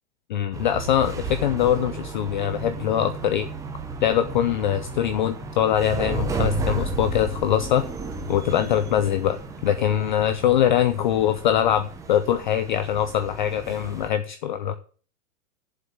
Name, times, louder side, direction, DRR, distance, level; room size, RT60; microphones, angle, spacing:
voice 1, 0.3-3.5 4.0-7.8 8.3-14.8, left 10 dB, 35° left, 12 dB, 0.4 m, -23 dB
sound 1, 0.5-14.1, right 3 dB, 5° right, 0.7 m, -33 dB
7.3 x 7.2 x 7.3 m, 0.41 s
supercardioid pair, 160°, 46 cm